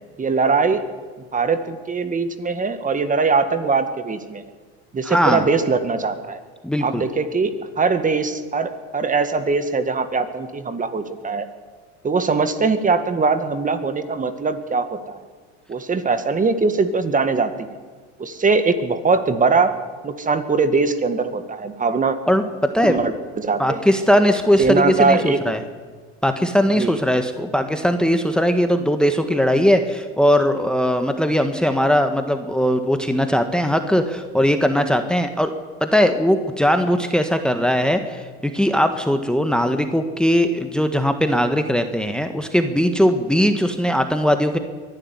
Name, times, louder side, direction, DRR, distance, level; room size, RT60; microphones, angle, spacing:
voice 1, 0.2-0.8 1.3-4.4 4.9-6.4 6.8-7.5 7.8-11.5 12.0-15.2 15.7-17.7 18.2-19.8 20.0-22.2 22.8-23.8 24.6-25.4 26.8-27.0, right 4 dB, 25° right, 10 dB, 1.9 m, -21 dB
voice 2, 5.1-5.5 6.6-7.0 22.3-23.0 23.6-25.6 26.2-35.5 35.8-44.6, equal, 5° left, 7 dB, 1.6 m, -19 dB
22.5 x 12.0 x 9.8 m, 1.5 s
supercardioid pair, 95°, 32 cm